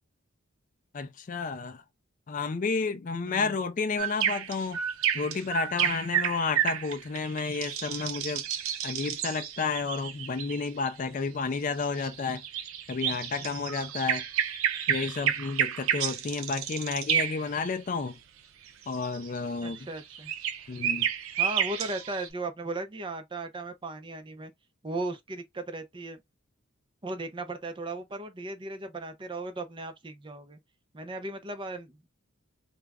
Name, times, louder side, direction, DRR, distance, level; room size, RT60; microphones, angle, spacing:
voice 1, 0.9-1.8 2.3-4.8 5.1-8.4 8.8-12.4 12.9-14.2 14.9-18.2 18.9-19.9 20.7-21.1, left 4 dB, 40° left, 0.4 m, -31 dB
voice 2, 3.2-3.6 19.6-20.3 21.4-24.5 24.8-26.2 27.0-30.6 30.9-32.1, right 2 dB, 25° right, 0.5 m, -36 dB
sound 1, 4.0-10.9 11.8-17.7 18.7-22.3, right 9 dB, 80° right, 0.5 m, -31 dB
2.3 x 2.1 x 3.4 m
head